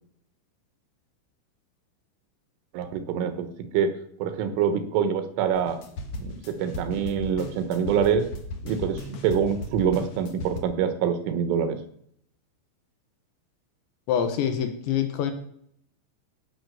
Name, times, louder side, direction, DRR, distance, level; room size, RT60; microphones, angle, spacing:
voice 1, 2.7-3.5 3.7-3.9 4.2-5.8 6.2-8.2 8.6-11.8, right 7 dB, 75° right, 9 dB, 3.7 m, -25 dB
sound 1, 5.5-10.6, left 1 dB, 90° left, 1.4 m, -37 dB
voice 2, 14.1-15.3, left 8 dB, 70° left, 7 dB, 3.2 m, -25 dB
17.5 x 7.3 x 6.5 m, 0.67 s
omnidirectional pair, 5.9 m